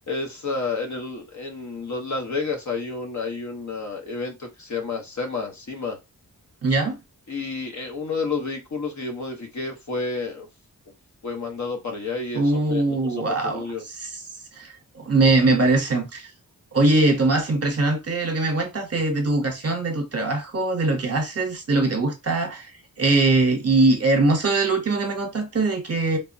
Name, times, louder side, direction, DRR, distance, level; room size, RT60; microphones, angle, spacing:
voice 1, 0.1-6.0 7.3-10.5 11.2-12.4 12.7-13.8, left 4 dB, 55° left, 0.9 m, -30 dB
voice 2, 6.6-7.0 12.3-14.2 14.6-16.3 16.7-22.7 23.0-26.2, right 2 dB, 45° right, 0.8 m, -22 dB
3.4 x 2.0 x 2.6 m
wide cardioid pair, 80°, 35 cm